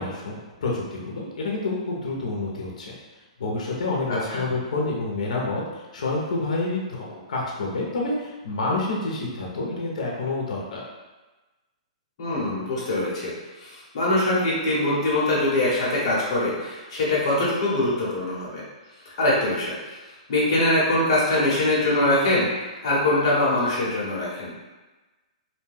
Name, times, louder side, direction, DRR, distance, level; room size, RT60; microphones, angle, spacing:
voice 1, 0.0-2.9 3.4-10.8, left 2 dB, 80° left, -2 dB, 0.6 m, -28 dB
voice 2, 4.1-4.4 12.2-18.6 19.2-24.5, left 1 dB, 40° left, -6 dB, 1.0 m, -23 dB
2.6 x 2.2 x 3.3 m, 1.2 s
hypercardioid pair, 175°, 4 cm